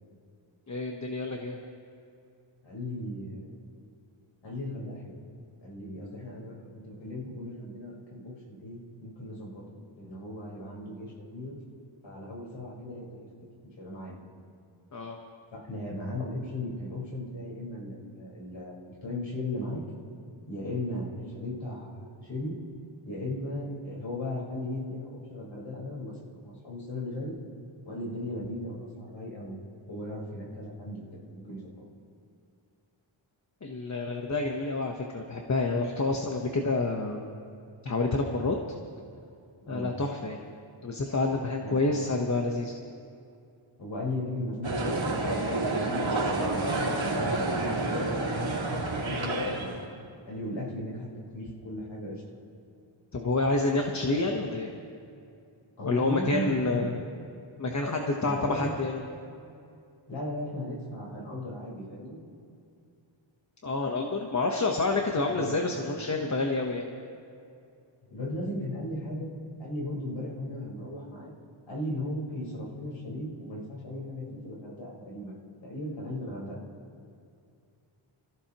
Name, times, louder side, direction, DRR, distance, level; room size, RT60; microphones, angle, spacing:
voice 1, 0.7-1.6 14.9-15.2 33.6-37.3 37.8-38.6 39.7-40.4 40.8-42.7 53.1-54.7 55.8-57.0 57.6-59.0 63.6-66.9, left 3 dB, 35° left, 2 dB, 1.0 m, -28 dB
voice 2, 2.6-3.6 4.4-5.2 5.6-9.6 10.0-11.6 12.0-13.3 13.8-14.2 15.5-19.8 20.5-22.5 23.0-26.2 26.4-27.3 27.8-29.6 29.9-31.7 39.7-39.9 41.6-42.2 43.8-48.5 49.0-49.8 50.2-52.5 55.8-56.9 58.2-58.7 60.1-62.2 65.3-65.5 68.1-69.3 69.6-71.3 71.7-75.4 75.6-76.6, left 1 dB, 65° left, -4 dB, 4.5 m, -37 dB
sound 1, 44.6-49.8, right 2 dB, 70° right, 3.3 m, -29 dB
28.0 x 15.0 x 3.0 m, 2.5 s
wide cardioid pair, 135°, 48 cm